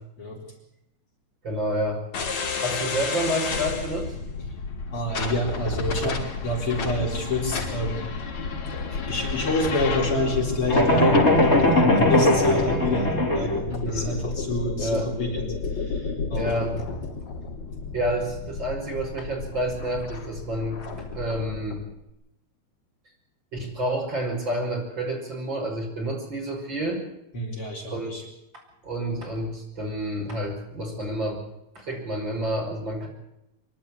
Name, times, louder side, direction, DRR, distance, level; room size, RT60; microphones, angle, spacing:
voice 1, 1.4-2.0 2.6-4.1 13.8-14.2 14.8-15.1 16.4-16.8 17.9-20.8 21.1-21.8 23.5-27.0 27.9-28.2 28.8-31.4 31.7-33.1, right 1 dB, 35° right, 0 dB, 6.3 m, -29 dB
sound 1, 2.1-21.8, left 4 dB, 65° left, 4.5 m, -31 dB
voice 2, 4.9-8.0 8.7-16.6 27.3-28.2, left 1 dB, 45° left, -1 dB, 5.1 m, -28 dB
sound 2, 10.7-13.6, left 1 dB, 20° left, 3.9 m, -19 dB
25.0 x 12.0 x 9.8 m, 0.83 s
omnidirectional pair, 3.4 m